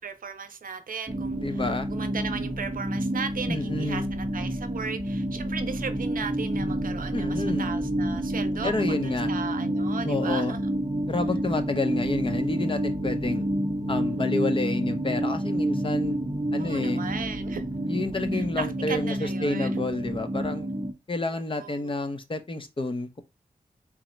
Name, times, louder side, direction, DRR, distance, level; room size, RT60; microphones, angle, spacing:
voice 1, 0.0-1.6 1.9-10.6 16.6-17.6 18.3-19.8 21.3-22.1, right 5 dB, 75° right, 0.6 m, -36 dB
sound 1, 1.1-20.9, right 1 dB, 25° right, 0.8 m, -29 dB
voice 2, 1.3-1.9 3.5-4.1 7.1-7.7 8.6-9.3 10.0-10.6 11.1-13.4 13.9-16.2 16.5-17.0 17.9-20.7 21.1-23.2, left 2 dB, 35° left, 0.7 m, -29 dB
3.6 x 2.0 x 4.2 m
wide cardioid pair, 70°, 15 cm